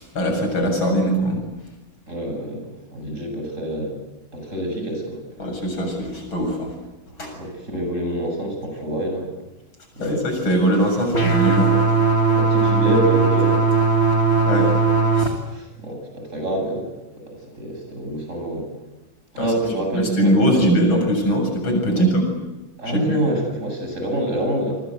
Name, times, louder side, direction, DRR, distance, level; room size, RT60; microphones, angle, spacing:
voice 1, 0.0-1.4 5.4-6.7 7.2-7.3 10.0-11.7 14.5-14.7 15.2-15.3 19.4-19.5 19.9-22.2 22.9-23.2, right 1 dB, 85° left, 3 dB, 8.3 m, -21 dB
voice 2, 2.1-3.9 4.3-5.2 7.3-9.3 10.0-10.2 12.3-13.6 15.5-16.9 17.3-18.7 19.3-20.7 21.8-22.0 22.8-24.8, right 1 dB, 35° right, 2 dB, 8.5 m, -26 dB
sound 1, 11.1-15.3, right 4 dB, 30° left, 2.9 m, -18 dB
29.0 x 24.0 x 8.2 m, 1.0 s
omnidirectional pair, 2.2 m